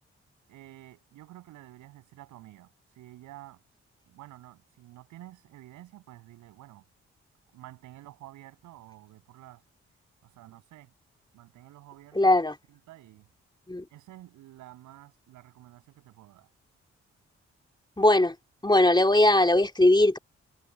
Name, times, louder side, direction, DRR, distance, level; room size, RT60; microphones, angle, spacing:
voice 1, 0.5-3.6 4.1-6.8 7.5-9.6 10.2-10.9 11.3-12.3 12.7-13.3 13.9-16.5, right 15 dB, 90° right, 7.5 m, -50 dB
voice 2, 12.2-12.5 13.7-13.8 18.0-18.3 18.6-20.2, left 1 dB, 15° left, 2.7 m, -20 dB
supercardioid pair, 45°, 29 cm